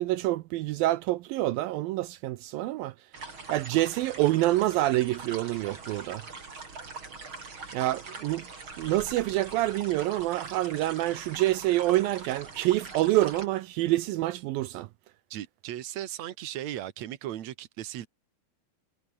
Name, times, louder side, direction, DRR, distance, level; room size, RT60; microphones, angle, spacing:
voice 1, 0.0-2.9 3.5-6.2 7.7-8.5 8.8-14.9, right 16 dB, 85° right, 2.2 m, -27 dB
sound 1, 3.1-13.5, right 4 dB, 30° right, 4.7 m, -43 dB
voice 2, 15.3-18.1, right 12 dB, 60° right, 2.1 m, -37 dB
omnidirectional pair, 4.7 m